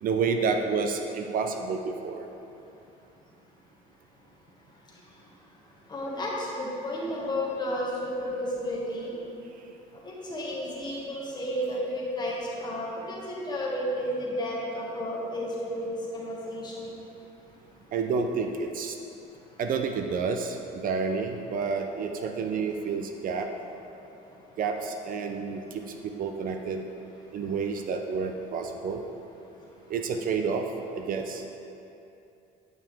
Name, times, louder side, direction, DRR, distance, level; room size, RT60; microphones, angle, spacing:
voice 1, 0.0-2.3 17.9-19.0 19.6-23.5 24.6-26.9 27.3-29.0 29.9-30.7 30.9-31.4, right 5 dB, 55° right, 5 dB, 0.5 m, -29 dB
voice 2, 5.9-9.1 10.0-16.9, equal, 25° left, -5 dB, 1.8 m, -32 dB
9.2 x 5.8 x 3.5 m, 2.8 s
cardioid pair, 110°, 17 cm